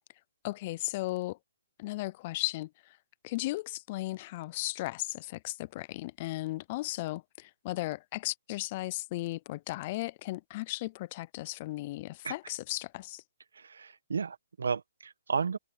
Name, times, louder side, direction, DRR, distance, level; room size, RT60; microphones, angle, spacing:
voice 1, 0.4-1.4 1.8-3.0 3.2-13.2, left 18 dB, 30° left, 0.5 m, -36 dB
voice 2, 13.5-15.6, right 5 dB, 85° right, 1.6 m, -33 dB
hypercardioid pair, 160°, 0 cm